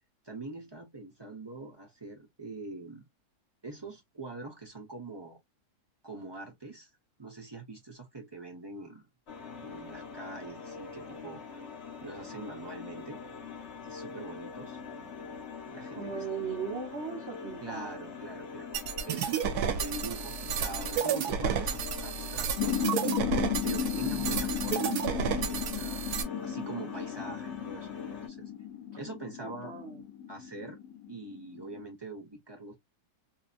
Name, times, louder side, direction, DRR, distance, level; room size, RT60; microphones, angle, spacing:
voice 1, 0.2-3.1 3.6-5.4 6.0-6.9 7.2-9.1 9.6-11.6 12.0-13.2 13.8-14.8 15.7-16.2 17.6-19.4 19.7-22.9 23.6-26.0 26.4-28.5 29.0-29.7 30.3-30.8 31.1-32.8, right 2 dB, 20° right, 0.7 m, -43 dB
sound 1, 9.3-28.3, left 5 dB, 50° left, 1.1 m, -44 dB
voice 2, 15.9-18.1 23.9-24.4 26.7-27.1 29.4-30.0, right 6 dB, 50° right, 1.1 m, -39 dB
sound 2, 18.7-26.2, right 7 dB, 85° right, 1.2 m, -31 dB
sound 3, 22.6-31.8, left 10 dB, 80° left, 1.1 m, -35 dB
2.8 x 2.7 x 2.4 m
omnidirectional pair, 1.6 m